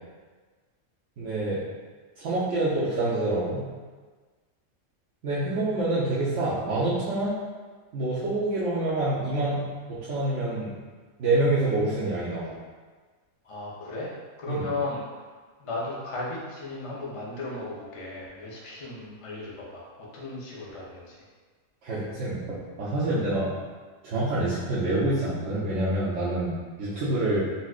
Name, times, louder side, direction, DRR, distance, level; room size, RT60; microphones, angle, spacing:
voice 1, 1.2-1.6 2.2-3.7 5.2-7.3 7.9-10.7 11.2-12.5 14.5-14.6 21.8-23.5 24.0-27.4, right 2 dB, 70° right, -10 dB, 0.9 m, -27 dB
voice 2, 13.4-14.1 14.4-15.0 15.6-21.2, left 2 dB, 40° left, -5 dB, 0.5 m, -35 dB
4.1 x 2.4 x 2.3 m, 1.4 s
omnidirectional pair, 1.3 m